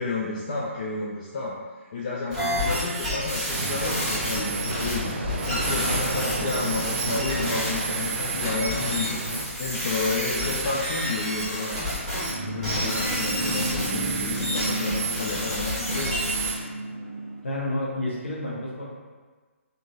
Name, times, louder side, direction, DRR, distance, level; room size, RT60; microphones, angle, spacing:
voice 1, 0.0-1.6 1.9-11.7 12.4-16.2, left 3 dB, 30° left, -5 dB, 0.3 m, -31 dB
sound 1, 2.3-12.3 12.6-16.5, equal, 5° left, 1.2 m, -29 dB
sound 2, 3.5-9.5, right 2 dB, 45° right, 0.3 m, -33 dB
sound 3, 11.9-17.4, right 1 dB, 85° left, 1.2 m, -32 dB
voice 2, 17.4-19.0, left 1 dB, 55° left, -5 dB, 1.0 m, -30 dB
3.6 x 2.7 x 2.4 m, 1.4 s
figure-of-eight pair, 140°, 8 cm